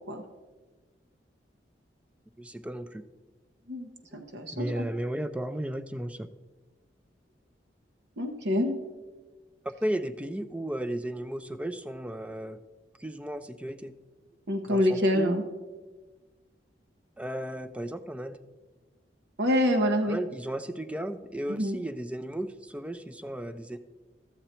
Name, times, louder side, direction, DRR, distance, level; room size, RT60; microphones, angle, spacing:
voice 1, 2.4-3.0 4.5-6.3 9.6-12.6 13.0-13.9 14.7-15.4 17.2-18.4 20.1-23.8, right 1 dB, 5° right, 11 dB, 0.4 m, -34 dB
voice 2, 3.7-4.9 8.2-8.7 14.5-15.4 19.4-20.2 21.5-21.8, left 1 dB, 65° right, 4 dB, 0.9 m, -26 dB
12.5 x 8.0 x 4.4 m, 1.3 s
head